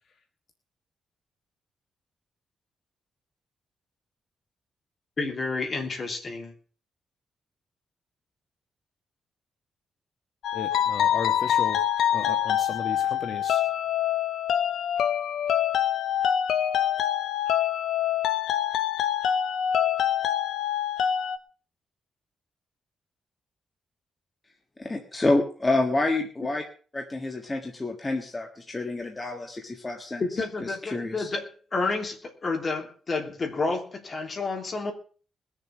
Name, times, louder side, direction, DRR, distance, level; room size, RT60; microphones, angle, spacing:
voice 1, 5.2-6.5 30.2-34.9, left 3 dB, 35° left, 2 dB, 3.2 m, -30 dB
sound 1, 10.4-21.4, left 10 dB, 85° left, 1.0 m, -25 dB
voice 2, 10.5-11.8 12.1-13.6, left 6 dB, 50° left, 5 dB, 1.4 m, -35 dB
voice 3, 24.8-26.6 26.9-30.2 30.6-31.3, left 2 dB, 20° left, 2 dB, 1.6 m, -28 dB
21.0 x 7.2 x 6.0 m, 0.40 s
wide cardioid pair, 150°, 0 cm